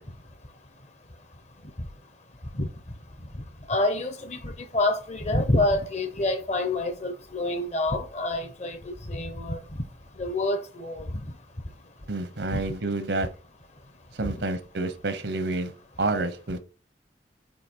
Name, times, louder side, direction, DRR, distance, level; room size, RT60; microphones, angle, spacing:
voice 1, 3.7-9.6 10.2-11.1 12.5-12.6, left 2 dB, 40° left, 0.9 m, -27 dB
voice 2, 12.1-13.3 14.2-15.7 16.0-16.6, right 2 dB, 75° right, 0.9 m, -28 dB
7.7 x 2.8 x 4.5 m
head